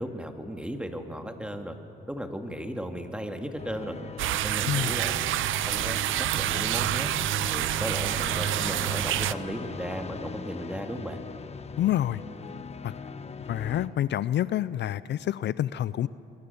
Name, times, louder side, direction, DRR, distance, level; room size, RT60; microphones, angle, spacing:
voice 1, 0.0-1.8 2.1-4.0 4.4-6.0 6.3-7.1 7.5-11.2, equal, 5° right, 4 dB, 2.4 m, -36 dB
sound 1, 3.6-13.9, left 5 dB, 30° left, 1.2 m, -40 dB
sound 2, 4.2-9.3, right 13 dB, 80° right, 0.7 m, -27 dB
voice 2, 11.8-12.2 12.8-12.9 13.5-16.1, left 12 dB, 65° left, 17 dB, 0.5 m, -27 dB
28.5 x 22.5 x 7.1 m, 2.8 s
cardioid pair, 90°, 20 cm